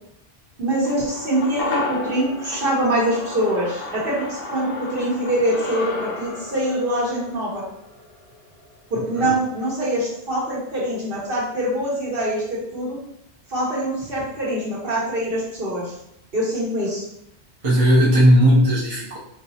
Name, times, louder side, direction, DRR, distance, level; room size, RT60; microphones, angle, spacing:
voice 1, 0.6-7.6 8.9-13.0 13.5-15.9 16.3-17.0, right 1 dB, 55° right, -5 dB, 1.4 m, -24 dB
sound 1, 0.8-9.3 9.6-9.7, left 2 dB, 75° left, 0.9 m, -33 dB
voice 2, 17.6-19.2, equal, 30° right, -6 dB, 0.8 m, -16 dB
4.7 x 3.0 x 2.8 m, 0.77 s
omnidirectional pair, 1.2 m